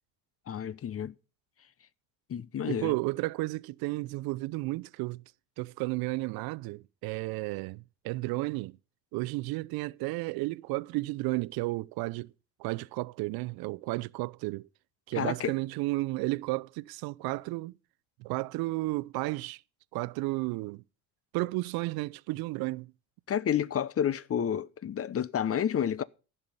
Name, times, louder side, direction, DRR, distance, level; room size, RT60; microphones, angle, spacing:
voice 1, 0.5-1.1 2.3-2.9 15.1-15.5 23.3-26.0, left 9 dB, 35° left, 0.8 m, -30 dB
voice 2, 2.6-5.2 5.6-8.8 9.1-12.3 12.6-14.7 15.1-17.7 18.2-19.6 19.9-20.8 21.3-22.9, right 22 dB, 65° right, 0.5 m, -33 dB
14.0 x 5.6 x 6.9 m
hypercardioid pair, 65°, 39 cm